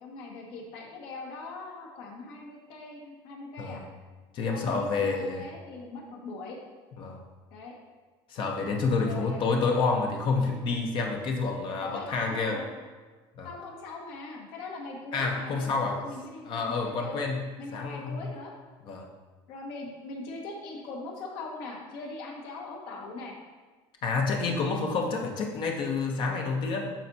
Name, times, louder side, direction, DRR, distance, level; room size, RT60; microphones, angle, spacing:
voice 1, 0.0-3.8 4.5-6.6 7.5-7.7 9.0-9.5 11.8-12.7 13.4-17.2 17.6-18.5 19.5-23.3, left 3 dB, 70° left, -1 dB, 1.7 m, -41 dB
voice 2, 4.3-5.5 7.0-7.2 8.3-12.6 13.4-13.5 15.1-16.0 16.4-17.4 17.7-18.2 18.9-19.1 24.0-26.9, left 4 dB, 45° left, 2 dB, 0.8 m, -28 dB
11.5 x 4.2 x 2.8 m, 1.3 s
cardioid pair, 140°, 11 cm